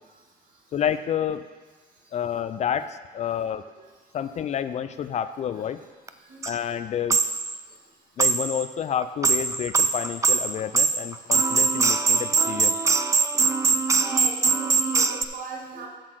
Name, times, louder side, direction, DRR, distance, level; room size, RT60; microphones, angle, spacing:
voice 1, 0.7-1.5 2.1-3.6 4.1-5.8 6.5-7.2 8.2-12.8, left 9 dB, 40° left, 12 dB, 0.4 m, -29 dB
sound 1, 6.1-6.2 6.4-6.5 7.1-7.6 8.2-8.7 9.0-15.2, right 4 dB, 20° right, 0.4 m, -22 dB
voice 2, 14.0-15.9, right 3 dB, 55° right, -1 dB, 2.0 m, -38 dB
7.6 x 6.4 x 6.3 m, 1.4 s
cardioid pair, 110°, 17 cm